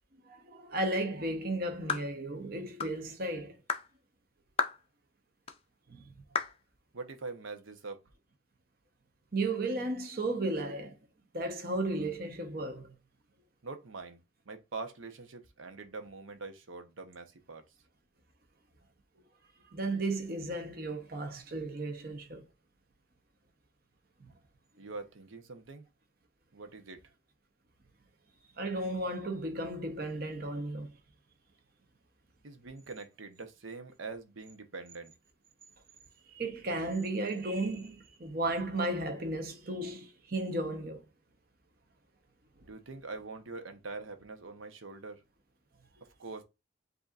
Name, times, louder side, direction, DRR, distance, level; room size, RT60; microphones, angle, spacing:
voice 1, 0.2-3.6 5.9-6.0 9.3-11.0 11.3-12.9 19.7-22.5 24.2-24.3 28.6-30.9 36.3-41.0, right 2 dB, 50° right, 0.9 m, -34 dB
sound 1, 1.9-2.1 2.8-3.0 3.7-3.9 4.6-4.8 5.5-5.6 6.4-6.6, left 6 dB, 30° left, 0.4 m, -32 dB
voice 2, 6.9-8.0 13.6-17.6 24.8-25.9 26.5-27.0 32.4-35.1 42.6-45.2 46.2-46.4, right 3 dB, 85° right, 0.9 m, -44 dB
7.8 x 2.7 x 2.4 m
head